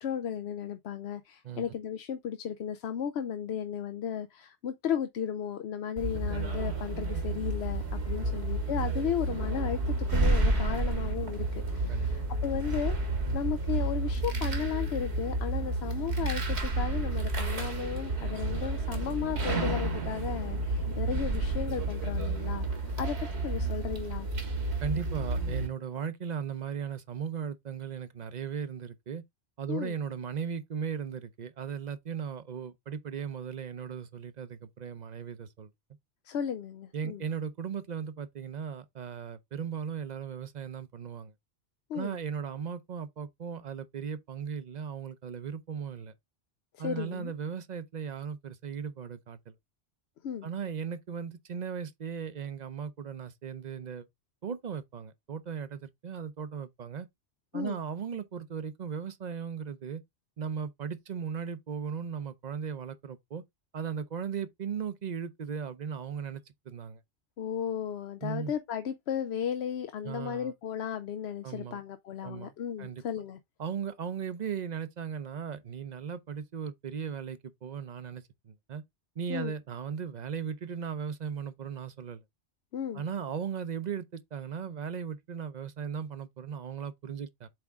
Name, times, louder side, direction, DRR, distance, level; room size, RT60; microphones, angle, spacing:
voice 1, 0.0-23.2 23.4-24.3 29.7-29.9 36.2-37.2 41.9-42.2 46.7-47.3 50.2-50.5 57.5-57.8 67.4-73.4 79.3-79.5 82.7-83.1, left 8 dB, 70° left, 0.8 m, -35 dB
sound 1, 6.0-25.7, right 2 dB, 70° right, 1.9 m, -31 dB
voice 2, 24.8-29.2 29.6-35.7 36.9-41.3 41.9-46.1 46.8-49.5 50.4-54.1 54.4-57.1 57.5-60.0 60.4-63.4 63.7-67.0 68.2-68.5 70.0-70.5 71.4-71.8 72.2-72.5 72.8-73.0 73.6-78.8 79.2-82.2 82.9-87.5, right 7 dB, 45° right, 0.7 m, -37 dB
7.9 x 3.6 x 3.5 m
omnidirectional pair, 1.2 m